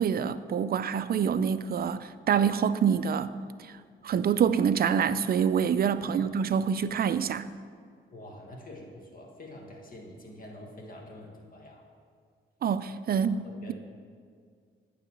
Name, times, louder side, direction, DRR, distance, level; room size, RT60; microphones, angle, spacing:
voice 1, 0.0-3.3 4.0-7.5 12.6-13.7, right 7 dB, 50° right, 0.4 m, -26 dB
voice 2, 6.0-6.3 8.1-11.8 13.1-13.7, left 1 dB, 45° left, 1.6 m, -46 dB
9.2 x 3.9 x 7.2 m
cardioid pair, 65°, 20 cm